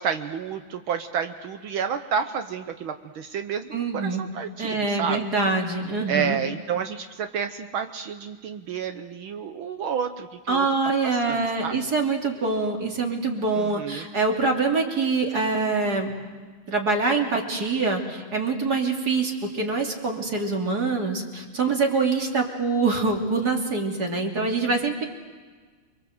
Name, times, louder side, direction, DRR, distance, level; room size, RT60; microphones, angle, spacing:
voice 1, 0.0-5.2 6.1-10.7 11.0-11.8 13.5-14.1, right 7 dB, 70° right, 8 dB, 1.7 m, -30 dB
voice 2, 3.7-4.2 4.6-6.4 10.5-16.1 16.7-25.1, right 3 dB, 45° right, 2 dB, 3.3 m, -25 dB
29.5 x 22.5 x 7.9 m, 1.4 s
omnidirectional pair, 2.4 m